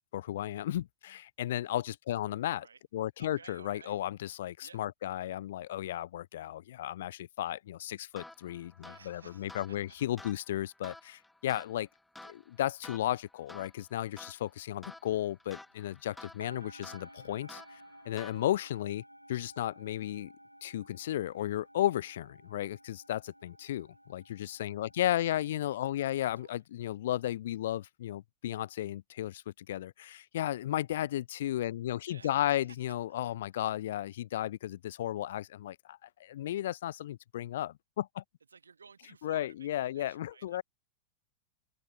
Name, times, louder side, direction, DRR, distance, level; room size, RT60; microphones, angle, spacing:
voice 1, 0.0-2.7 2.9-11.9 12.2-17.6 18.1-19.0 19.3-20.3 20.6-38.2 39.2-40.6, left 13 dB, 60° left, 0.3 m, -34 dB
voice 2, 3.2-4.1 4.6-4.8 8.8-9.8 25.1-26.6 32.0-32.8 38.5-40.6, right 5 dB, 75° right, 1.3 m, -56 dB
sound 1, 8.1-18.8, left 2 dB, 5° left, 0.7 m, -52 dB
sound 2, 14.5-14.7 14.9-16.0 16.4-25.2, equal, 90° right, 0.6 m, -55 dB
figure-of-eight pair, 90°, 0 cm